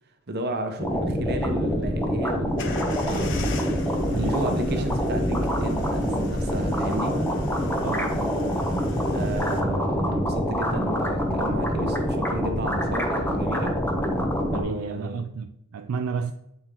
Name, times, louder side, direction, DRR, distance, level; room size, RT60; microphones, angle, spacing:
voice 1, 0.3-3.5 4.1-7.1 9.1-13.8 14.4-15.3, right 1 dB, 50° right, 0.8 m, -32 dB
sound 1, 0.8-14.6, equal, 10° left, 0.8 m, -26 dB
sound 2, 2.6-9.6, left 1 dB, 60° left, 0.8 m, -36 dB
voice 2, 4.1-4.9 7.8-8.4 14.5-16.3, right 6 dB, 85° right, 0.4 m, -32 dB
8.2 x 4.3 x 3.7 m
head